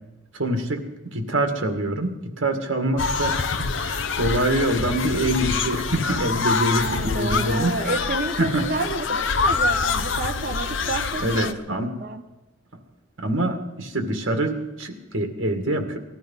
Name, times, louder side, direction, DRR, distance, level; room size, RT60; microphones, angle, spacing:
voice 1, 0.3-7.8 8.4-8.7 11.2-11.9 13.2-16.0, right 1 dB, 65° right, 5 dB, 2.0 m, -25 dB
sound 1, 3.0-11.5, left 4 dB, 65° left, 0.7 m, -26 dB
voice 2, 6.7-11.6 12.0-12.2, right 3 dB, 45° right, 3 dB, 1.0 m, -30 dB
19.0 x 13.0 x 5.5 m, 1.0 s
head